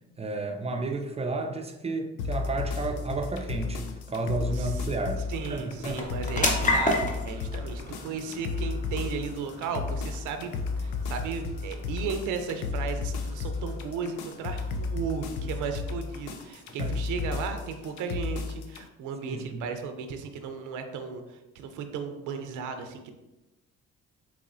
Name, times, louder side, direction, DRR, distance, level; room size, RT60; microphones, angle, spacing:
voice 1, 0.2-6.1 16.8-17.0 19.3-19.6, right 2 dB, 20° right, 4 dB, 0.4 m, -32 dB
sound 1, 2.2-18.8, left 4 dB, 75° left, 0.5 m, -33 dB
sound 2, 3.3-17.8, left 2 dB, 25° left, 0.7 m, -36 dB
voice 2, 5.3-6.5 6.7-23.1, right 5 dB, 85° right, 7 dB, 0.5 m, -35 dB
4.2 x 3.0 x 2.5 m, 1.0 s
cardioid pair, 90°, 30 cm